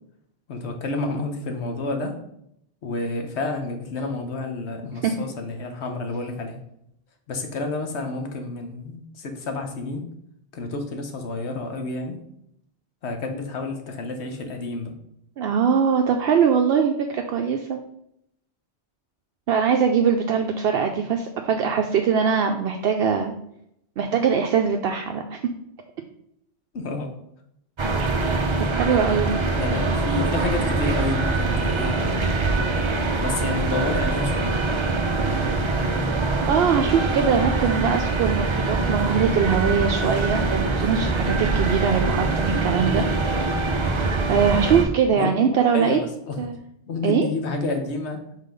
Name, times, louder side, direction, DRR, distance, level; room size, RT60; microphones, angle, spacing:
voice 1, 0.5-2.2 2.8-6.6 7.3-10.1 10.5-12.2 13.0-14.9 26.7-27.1 29.5-32.3 33.2-34.6 44.7-44.9 45.2-45.3 45.7-46.4 46.9-48.2, left 3 dB, 90° left, 5 dB, 1.2 m, -29 dB
voice 2, 15.4-17.8 19.5-23.3 24.0-25.4 28.7-29.4 36.5-43.0 44.3-46.0 46.4-46.6 47.0-47.3, right 6 dB, 70° right, 4 dB, 0.8 m, -22 dB
sound 1, 27.8-44.8, right 3 dB, 35° right, 0.5 m, -23 dB
5.7 x 3.8 x 5.1 m, 0.76 s
omnidirectional pair, 1.1 m